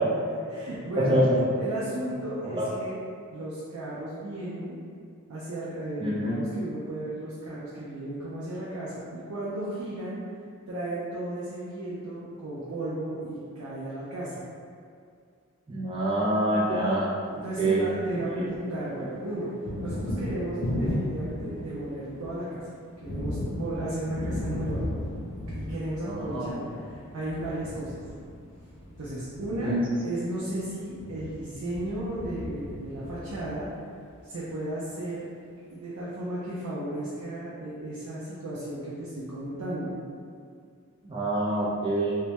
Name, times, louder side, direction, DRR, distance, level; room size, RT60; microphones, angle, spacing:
voice 1, 0.0-1.1 1.6-3.0 3.3-4.8 5.3-10.2 10.7-14.4 17.4-19.5 19.8-22.6 23.0-24.8 25.5-27.9 29.0-29.7 30.0-33.7 34.2-35.3 35.7-40.0, right 1 dB, 90° right, -8 dB, 0.5 m, -34 dB
voice 2, 1.0-1.4 2.5-2.7 6.0-6.4 15.7-17.8 18.3-18.4 26.1-26.5 29.6-29.8 41.1-42.2, right 1 dB, 25° right, -6 dB, 0.4 m, -26 dB
Thunder, 17.4-18.6 18.9-34.1, left 1 dB, 55° left, 0.4 m, -36 dB
2.1 x 2.1 x 2.8 m, 2.3 s
head